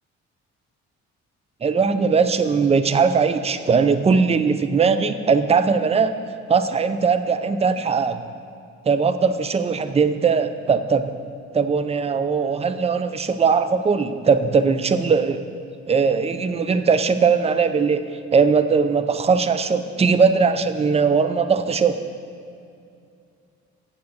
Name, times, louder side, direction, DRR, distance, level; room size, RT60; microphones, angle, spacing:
voice 1, 1.6-6.2 6.5-8.2 8.9-11.1 11.5-15.4 15.9-22.0, right 5 dB, 20° right, 11 dB, 0.5 m, -20 dB
8.1 x 7.1 x 6.4 m, 2.5 s
cardioid pair, 90°, 30 cm